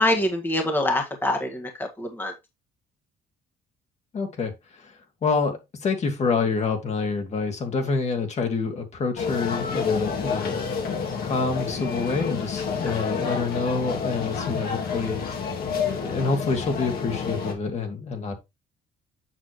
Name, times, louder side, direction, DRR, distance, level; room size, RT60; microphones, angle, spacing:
voice 1, 0.0-1.7 2.0-2.3, left 1 dB, 10° left, 1.6 m, -24 dB
voice 2, 4.1-10.6 11.2-15.2 15.8-18.3, left 4 dB, 40° left, 2.0 m, -27 dB
sound 1, 9.2-17.5, left 5 dB, 65° left, 2.2 m, -29 dB
7.6 x 6.1 x 3.0 m
cardioid pair, 110°, 17 cm